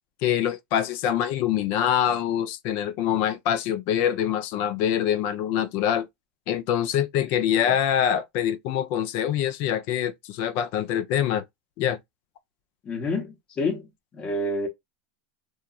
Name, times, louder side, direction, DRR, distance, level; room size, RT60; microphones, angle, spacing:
voice 1, 0.2-6.1 6.5-11.4 11.8-12.0, left 10 dB, 45° left, 0.4 m, -25 dB
voice 2, 7.3-7.8 12.8-13.9 14.1-14.7, left 2 dB, 20° left, 0.8 m, -29 dB
2.9 x 2.3 x 2.3 m
supercardioid pair, 160°, 5 cm